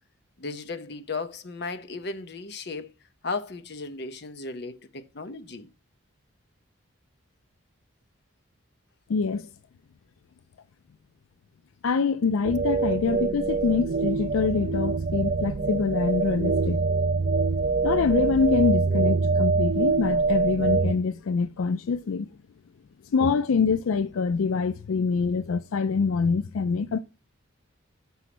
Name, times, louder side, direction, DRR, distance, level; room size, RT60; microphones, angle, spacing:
voice 1, 0.4-2.9 3.2-5.7, left 3 dB, 50° left, 0.7 m, -35 dB
voice 2, 9.1-9.5 11.8-16.8 17.8-22.3 23.1-27.0, left 5 dB, 80° left, 0.4 m, -25 dB
sound 1, 12.4-20.9, right 4 dB, 45° right, 0.7 m, -24 dB
6.1 x 5.5 x 5.8 m
head